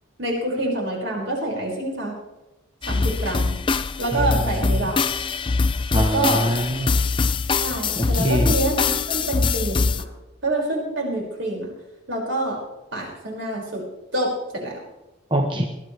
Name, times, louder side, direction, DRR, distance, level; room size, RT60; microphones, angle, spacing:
voice 1, 0.2-2.1 2.9-3.6 4.0-5.1 5.9-6.4 7.6-10.1 10.4-11.7 12.1-12.6 12.9-13.8 14.1-14.8, right 1 dB, 70° right, -2 dB, 5.7 m, -26 dB
sound 1, 2.8-10.0, left 4 dB, 25° left, 0.4 m, -23 dB
voice 2, 4.1-4.5 4.8-4.9 5.9-6.9 8.0-8.6 15.3-15.7, equal, 25° right, 3 dB, 1.0 m, -24 dB
20.5 x 12.5 x 3.3 m, 1.0 s
head